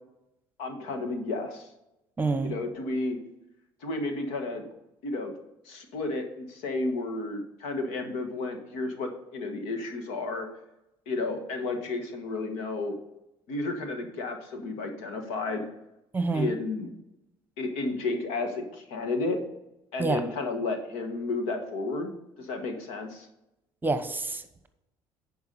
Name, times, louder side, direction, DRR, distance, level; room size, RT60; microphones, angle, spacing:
voice 1, 0.6-1.7 2.4-3.2 3.8-4.7 5.0-5.3 5.6-10.5 11.1-12.9 13.5-15.7 16.3-16.9 17.6-19.4 19.9-22.1 22.4-23.3, left 3 dB, 85° left, 5 dB, 1.5 m, -32 dB
voice 2, 2.2-2.5 16.1-16.5 20.0-20.2 23.8-24.7, right 3 dB, 20° right, 10 dB, 1.0 m, -27 dB
10.5 x 4.7 x 5.4 m, 0.88 s
supercardioid pair, 85°, 11 cm